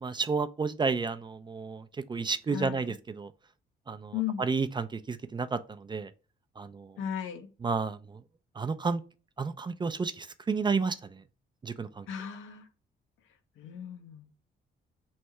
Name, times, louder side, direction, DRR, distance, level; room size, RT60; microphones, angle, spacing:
voice 1, 0.0-3.3 3.9-6.1 6.6-7.0 7.6-8.2 8.6-9.0 9.4-11.2 11.6-12.1, right 4 dB, 25° right, 0.4 m, -31 dB
voice 2, 2.5-2.9 4.1-4.4 7.0-7.5 12.1-12.7 13.6-14.3, left 9 dB, 80° left, 0.8 m, -36 dB
3.2 x 2.7 x 4.5 m
cardioid pair, 90°, 20 cm